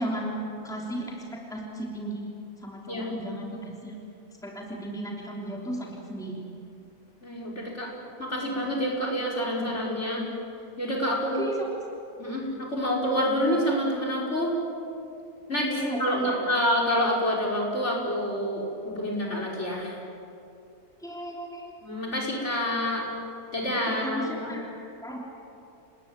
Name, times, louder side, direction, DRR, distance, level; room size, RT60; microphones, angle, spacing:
voice 1, 0.0-2.2 2.6-3.9 4.4-6.5 11.4-11.7 15.7-16.6 21.0-21.8 23.9-25.2, right 1 dB, ahead, -2 dB, 3.4 m, -35 dB
voice 2, 7.2-7.9 8.2-10.3 10.8-11.4 12.2-14.5 15.5-15.7 16.0-20.0 21.8-23.1 23.5-24.5, equal, 45° left, -1 dB, 5.7 m, -27 dB
29.0 x 20.0 x 9.1 m, 2.6 s
omnidirectional pair, 1.6 m